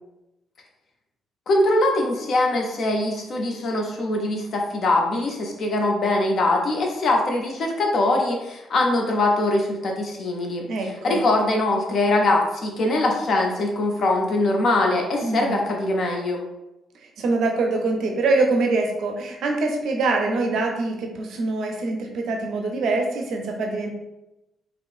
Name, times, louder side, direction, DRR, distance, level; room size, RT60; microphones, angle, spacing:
voice 1, 1.5-16.4, left 2 dB, 55° left, 1 dB, 0.5 m, -22 dB
voice 2, 10.7-11.2 15.2-15.6 17.2-23.9, right 3 dB, 65° right, 3 dB, 0.4 m, -24 dB
3.0 x 2.0 x 2.4 m, 0.94 s
hypercardioid pair, 40°, 0 cm